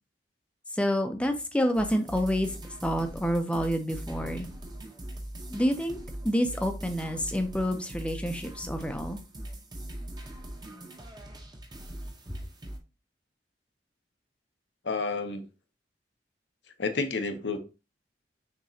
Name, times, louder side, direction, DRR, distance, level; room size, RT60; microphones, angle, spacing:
voice 1, 0.7-4.5 5.5-6.0 6.2-9.2, equal, 5° left, 0.6 m, -28 dB
sound 1, 1.7-12.8, right 1 dB, 25° right, 0.9 m, -41 dB
voice 2, 14.8-15.4 16.8-17.6, left 4 dB, 80° left, 0.8 m, -30 dB
6.3 x 3.0 x 2.7 m
head